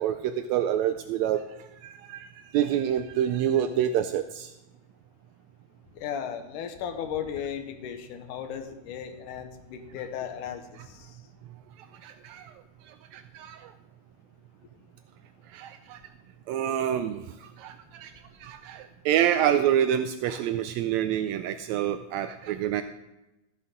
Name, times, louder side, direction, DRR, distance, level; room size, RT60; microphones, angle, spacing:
voice 1, 0.0-2.3 2.5-4.5 11.8-12.5 12.9-13.7 15.5-16.0 16.5-18.1 18.4-22.8, right 10 dB, 85° right, 9 dB, 1.6 m, -27 dB
voice 2, 5.9-11.2, left 8 dB, 75° left, 8 dB, 2.3 m, -36 dB
13.5 x 9.5 x 3.7 m, 0.98 s
omnidirectional pair, 3.7 m